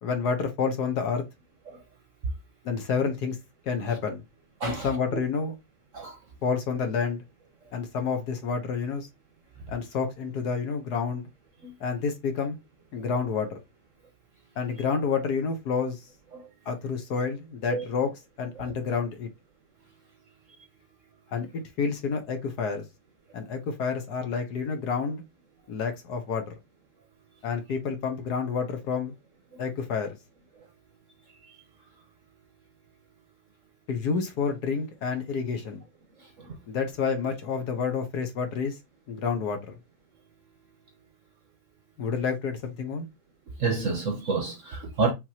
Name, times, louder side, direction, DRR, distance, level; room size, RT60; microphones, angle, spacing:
voice 1, 0.0-1.2 2.6-3.4 3.6-4.2 4.6-5.5 6.4-7.2 7.7-9.1 9.7-11.3 11.8-12.6 12.9-13.6 14.6-16.0 16.7-18.1 18.4-19.3 21.3-22.8 23.3-25.2 25.7-26.5 27.4-29.1 29.6-30.2 33.9-35.8 36.7-38.8 39.1-39.8 42.0-43.1, left 5 dB, 60° left, 1.4 m, -29 dB
voice 2, 4.6-4.9 5.9-6.2 11.6-11.7 16.3-16.5 17.7-17.9 18.6-18.7 29.5-29.6 31.5-31.6 36.2-36.5 43.6-45.1, right 4 dB, 50° right, 1.1 m, -30 dB
5.7 x 3.0 x 2.8 m
omnidirectional pair, 2.1 m